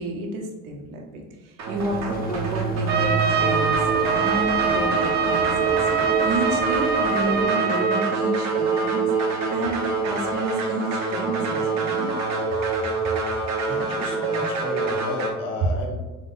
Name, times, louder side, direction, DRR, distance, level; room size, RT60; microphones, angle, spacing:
voice 1, 0.0-12.2, right 2 dB, 85° right, 1 dB, 0.9 m, -31 dB
sound 1, 1.6-15.3, right 3 dB, 55° right, 1.1 m, -26 dB
sound 2, 1.7-7.4, left 3 dB, 30° left, 0.4 m, -39 dB
Trumpet, 2.9-8.2, right 6 dB, 30° right, 0.4 m, -24 dB
voice 2, 13.6-15.9, left 2 dB, 80° left, 0 dB, 1.2 m, -33 dB
3.9 x 3.1 x 3.7 m, 1.2 s
cardioid pair, 110°, 32 cm